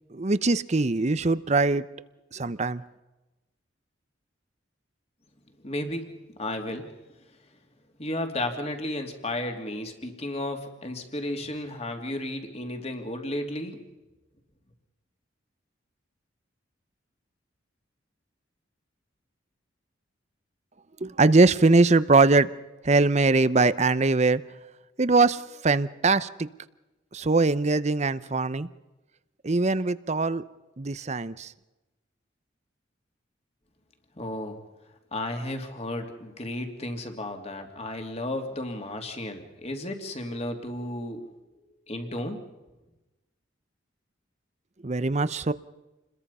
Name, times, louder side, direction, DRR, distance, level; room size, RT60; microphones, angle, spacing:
voice 1, 0.1-1.8 2.3-2.8 21.0-22.5 22.8-24.4 25.0-26.5 27.1-28.7 29.4-30.4 30.8-31.5 44.8-45.5, right 3 dB, 35° right, 15 dB, 0.7 m, -22 dB
voice 2, 5.6-6.1 6.4-6.9 8.0-13.8 34.2-34.6 35.1-41.3 41.9-42.4, left 1 dB, 35° left, 4 dB, 3.0 m, -33 dB
28.5 x 21.5 x 5.6 m, 1.1 s
head